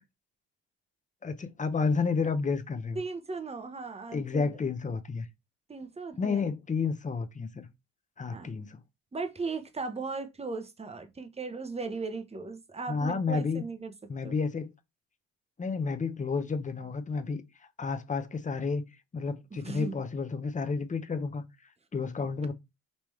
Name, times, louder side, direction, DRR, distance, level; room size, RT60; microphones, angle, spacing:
voice 1, 1.2-3.0 4.1-5.3 6.2-7.7 8.2-8.8 12.9-13.6 14.1-14.7 15.6-17.4 17.8-18.9 19.1-21.4 21.9-22.5, left 4 dB, 20° left, 0.8 m, -31 dB
voice 2, 3.0-4.5 5.7-6.4 8.3-8.5 9.1-13.9 14.2-14.3 19.5-20.0, right 4 dB, 20° right, 0.9 m, -37 dB
5.4 x 3.0 x 3.1 m
cardioid pair, 85°, 34 cm